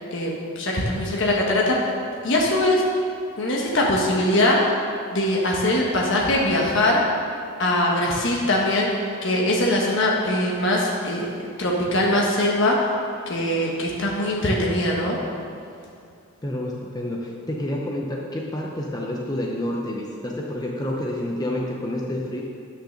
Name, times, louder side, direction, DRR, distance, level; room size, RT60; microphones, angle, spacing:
voice 1, 0.1-1.8 2.2-2.8 3.4-4.6 5.1-7.0 7.6-8.9 9.2-12.8 13.3-15.2, left 1 dB, 55° left, -3 dB, 1.2 m, -22 dB
voice 2, 16.4-22.4, left 1 dB, 20° left, -1 dB, 0.7 m, -29 dB
9.0 x 6.4 x 6.5 m, 2.5 s
head